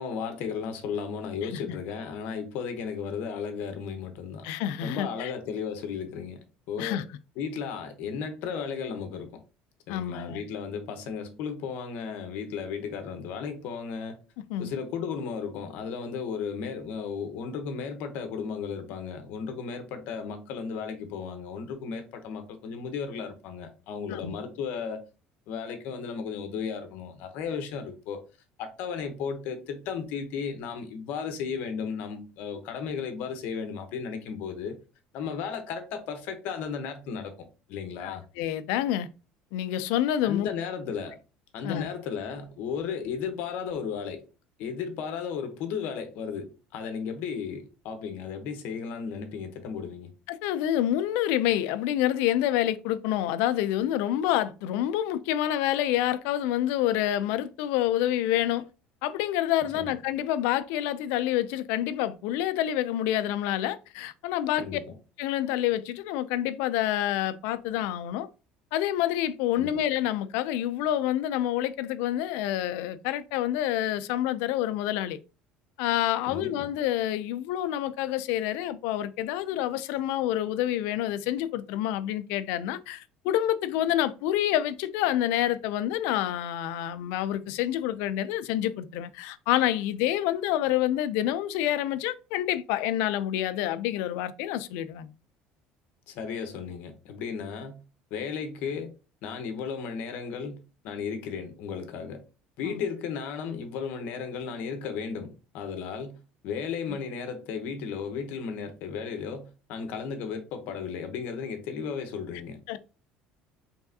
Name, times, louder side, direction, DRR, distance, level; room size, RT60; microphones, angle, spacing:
voice 1, 0.0-4.5 4.8-7.0 7.4-9.4 9.9-14.2 14.6-25.0 25.5-28.2 28.6-34.8 35.1-38.2 40.2-41.2 41.5-44.2 44.6-50.1 59.7-59.9 64.6-65.0 69.6-69.8 76.3-76.7 96.1-97.8 98.1-98.9 99.2-102.2 102.6-112.6, left 6 dB, 60° left, 0.9 m, -35 dB
voice 2, 4.4-5.3 6.8-7.0 9.9-10.4 14.5-14.7 24.1-24.4 38.0-39.1 39.5-40.5 41.6-41.9 50.3-58.6 59.0-64.8 65.2-68.3 68.7-75.2 75.8-95.1 102.6-102.8 112.7-112.8, left 12 dB, 80° left, 0.4 m, -28 dB
4.6 x 3.4 x 2.7 m
cardioid pair, 165°, 3 cm